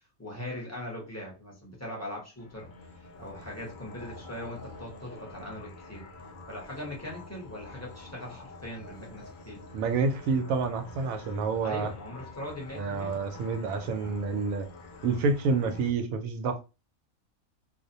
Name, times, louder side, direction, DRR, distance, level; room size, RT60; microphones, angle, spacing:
voice 1, 0.2-2.7 3.2-6.0 6.5-9.6 11.6-13.2, left 1 dB, 15° left, -2 dB, 0.7 m, -40 dB
sound 1, 2.3-15.9, left 2 dB, 70° left, 0.4 m, -47 dB
voice 2, 9.7-11.9 12.7-14.7 15.0-16.6, right 4 dB, 85° right, 6 dB, 1.0 m, -28 dB
2.5 x 2.1 x 2.6 m, 0.29 s
omnidirectional pair, 1.4 m